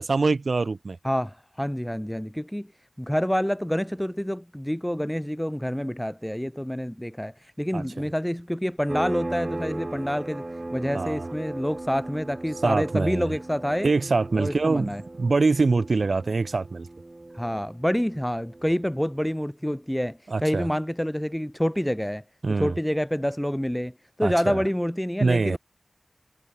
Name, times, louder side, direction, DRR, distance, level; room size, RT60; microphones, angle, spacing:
voice 1, 0.0-1.0 7.7-7.8 10.9-11.3 12.6-13.3 13.8-16.9 20.3-20.7 22.4-22.7 24.2-24.6 25.2-25.6, right 3 dB, 70° right, 1.5 m, -24 dB
voice 2, 1.0-2.7 3.0-13.9 14.3-15.0 17.3-22.2 22.5-25.6, equal, 5° left, 2.4 m, -27 dB
sound 1, 8.9-19.2, right 2 dB, 35° right, 7.5 m, -37 dB
wide cardioid pair, 70°, 0 cm